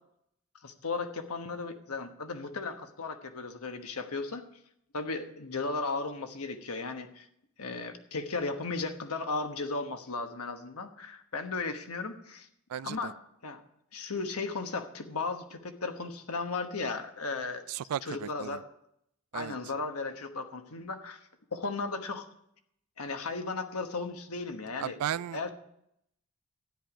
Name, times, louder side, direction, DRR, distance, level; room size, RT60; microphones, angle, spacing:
voice 1, 0.6-4.5 4.9-7.3 7.6-12.5 12.8-13.2 13.4-13.6 13.9-17.6 18.0-18.6 19.3-21.2 21.5-22.3 23.0-25.0 25.3-25.5, left 3 dB, 80° left, 1.3 m, -35 dB
voice 2, 12.7-13.1 17.7-18.6 19.3-19.6 24.8-25.5, right 10 dB, 80° right, 0.3 m, -35 dB
13.0 x 10.5 x 5.0 m
head